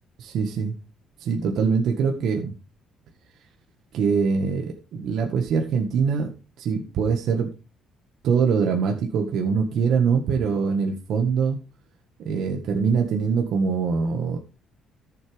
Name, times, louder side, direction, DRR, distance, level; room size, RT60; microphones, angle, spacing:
voice 1, 0.2-0.7 1.2-2.5 3.9-6.3 6.6-7.5 8.2-11.6 12.3-14.4, right 5 dB, 65° right, 3 dB, 1.7 m, -23 dB
13.5 x 7.8 x 3.6 m, 0.31 s
cardioid pair, 115°, 0 cm